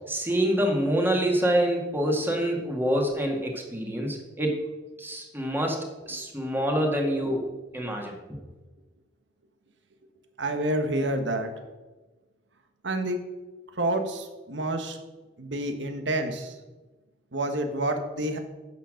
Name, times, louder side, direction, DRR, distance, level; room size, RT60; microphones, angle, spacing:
voice 1, 0.1-4.6 5.0-8.2, equal, 10° right, 1 dB, 1.9 m, -26 dB
voice 2, 10.4-11.5 12.8-13.2 13.8-15.0 15.4-16.5 17.3-18.4, right 1 dB, 70° right, 6 dB, 1.4 m, -28 dB
10.0 x 7.1 x 6.5 m, 1.2 s
head